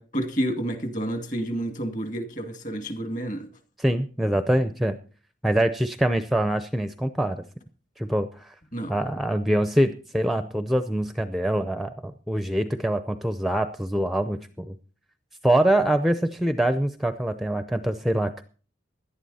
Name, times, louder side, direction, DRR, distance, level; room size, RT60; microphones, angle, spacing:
voice 1, 0.0-3.5 8.7-9.0, right 1 dB, 40° left, 6 dB, 2.3 m, -29 dB
voice 2, 3.8-5.0 5.4-7.4 8.0-8.5 8.9-14.7 15.4-18.4, right 1 dB, ahead, 10 dB, 0.5 m, -24 dB
17.0 x 11.5 x 4.2 m, 0.40 s
head